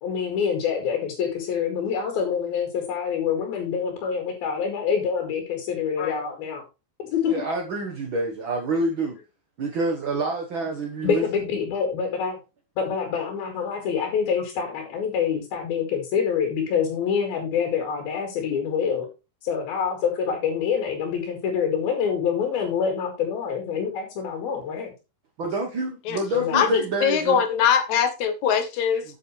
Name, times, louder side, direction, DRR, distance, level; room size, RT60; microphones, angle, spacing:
voice 1, 0.0-6.6 7.0-7.3 11.0-12.4 12.8-19.1 19.4-24.9 26.3-26.7, left 7 dB, 90° left, 3.9 m, -26 dB
voice 2, 7.3-9.2 9.6-11.2 25.4-27.4, right 2 dB, 75° right, 1.1 m, -27 dB
voice 3, 26.5-29.0, left 7 dB, 65° left, 2.1 m, -22 dB
8.7 x 8.3 x 3.2 m
omnidirectional pair, 4.2 m